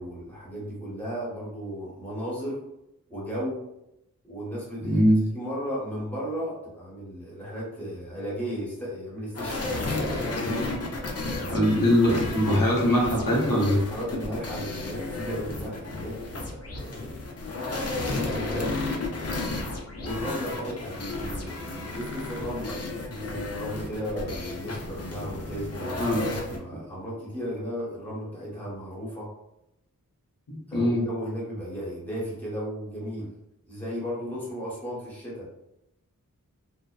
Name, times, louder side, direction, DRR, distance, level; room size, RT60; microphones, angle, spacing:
voice 1, 0.0-2.6 3.1-3.6 4.2-5.1 5.3-9.7 10.3-10.7 11.3-11.7 13.8-17.1 18.0-18.7 20.0-26.1 26.4-29.3 30.7-33.3 33.7-35.5, equal, 5° left, -6 dB, 1.0 m, -35 dB
voice 2, 4.8-5.2 11.5-13.8 26.0-26.2 30.5-31.0, equal, 80° left, -3 dB, 0.8 m, -22 dB
sound 1, 9.3-26.6, left 2 dB, 45° left, 0.5 m, -33 dB
2.7 x 2.0 x 2.2 m, 0.85 s
wide cardioid pair, 70°, 34 cm